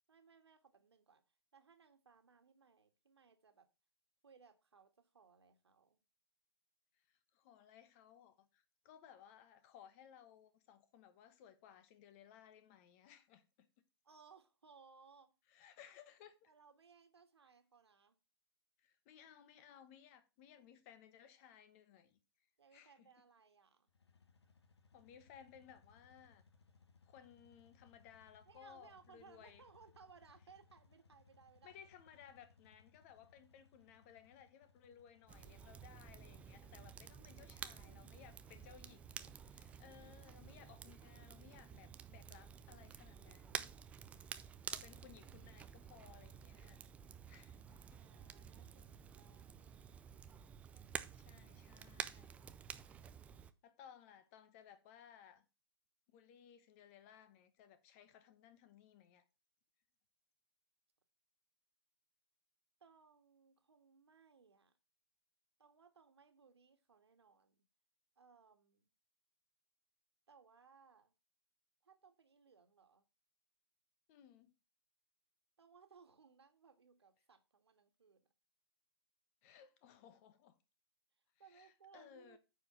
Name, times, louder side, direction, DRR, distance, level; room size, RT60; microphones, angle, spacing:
voice 1, 0.1-3.7 4.2-6.0 14.0-15.3 16.5-18.2 22.6-23.9 28.5-31.8 37.5-38.7 47.9-49.9 62.8-64.7 65.6-67.6 68.2-68.9 70.3-71.1 71.8-73.0 75.6-78.3 81.4-82.4, right 5 dB, 75° right, 1.9 m, -65 dB
voice 2, 7.1-13.7 15.5-16.5 18.8-22.2 22.7-23.1 24.9-26.4 27.0-29.6 31.6-43.8 44.1-44.3 44.6-48.0 51.1-52.5 53.6-55.4 56.1-59.3 74.1-74.5 79.4-80.6 81.5-82.4, left 9 dB, 35° left, 1.2 m, -61 dB
sound 1, 23.9-40.6, left 5 dB, 80° left, 1.6 m, -70 dB
Crackle, 35.3-53.5, right 7 dB, 10° right, 0.4 m, -51 dB
9.3 x 5.0 x 5.8 m
hypercardioid pair, 135°, 14 cm